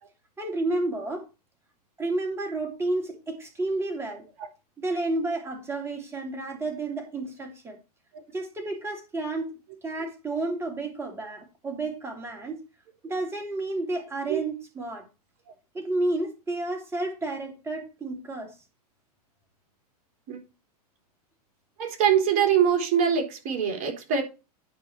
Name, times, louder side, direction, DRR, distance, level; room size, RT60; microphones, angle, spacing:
voice 1, 0.4-1.3 2.0-4.2 4.8-7.8 8.3-9.5 9.8-12.6 13.0-15.1 15.7-18.5, right 2 dB, 15° right, 3.1 m, -31 dB
voice 2, 21.8-24.2, right 8 dB, 40° right, 3.5 m, -23 dB
10.5 x 4.8 x 4.5 m
hypercardioid pair, 125°, 20 cm